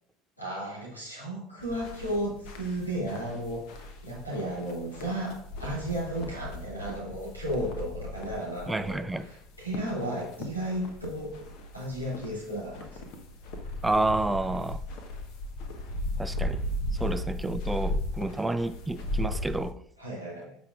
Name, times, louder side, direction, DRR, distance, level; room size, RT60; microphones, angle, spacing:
voice 1, 0.4-11.3 11.7-13.1 20.0-20.6, right 1 dB, 90° left, 2.4 m, -34 dB
sound 1, 1.6-19.7, left 1 dB, 55° left, 1.0 m, -37 dB
voice 2, 8.7-9.3 13.8-14.8 16.2-16.6 17.0-19.8, right 2 dB, 10° right, 0.4 m, -29 dB
14.0 x 5.1 x 2.4 m
figure-of-eight pair, 65°, 0 cm